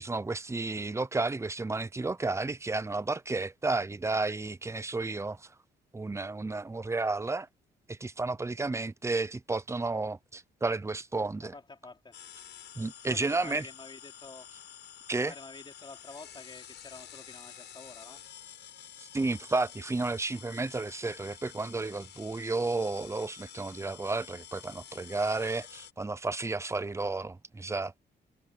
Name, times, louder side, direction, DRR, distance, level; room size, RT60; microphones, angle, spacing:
voice 1, 0.0-5.5 5.9-7.5 7.9-11.5 12.8-13.6 15.1-15.3 19.0-28.0, right 3 dB, 15° right, 0.7 m, -32 dB
voice 2, 11.4-12.2 13.0-14.5 15.2-18.2, left 3 dB, 25° left, 4.6 m, -48 dB
sound 1, 12.1-25.9, left 10 dB, 75° left, 6.8 m, -49 dB
cardioid pair, 110°, 18 cm